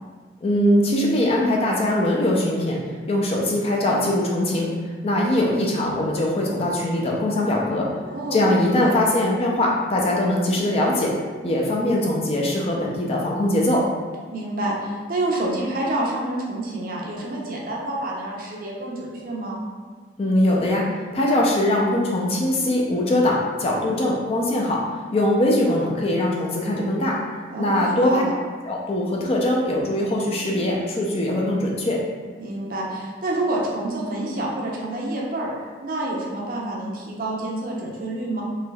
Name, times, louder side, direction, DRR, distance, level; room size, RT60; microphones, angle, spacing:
voice 1, 0.4-7.9 8.3-11.1 11.4-13.9 20.2-27.2 27.6-28.2 28.7-32.0, left 1 dB, 30° left, -2 dB, 0.4 m, -22 dB
voice 2, 8.1-8.9 14.3-19.6 27.5-28.3 32.4-38.4, right 1 dB, 45° right, -3 dB, 0.5 m, -28 dB
3.2 x 2.9 x 2.2 m, 1.5 s
head